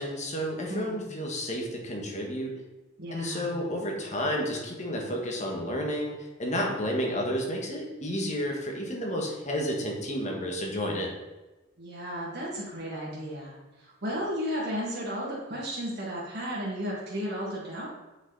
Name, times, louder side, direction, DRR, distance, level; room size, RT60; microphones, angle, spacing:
voice 1, 0.0-2.5 3.1-11.1, equal, 40° left, 0 dB, 1.6 m, -31 dB
voice 2, 0.7-1.1 3.0-3.6 11.8-17.9, equal, 55° right, -6 dB, 2.2 m, -34 dB
7.2 x 5.7 x 4.1 m, 1.1 s
head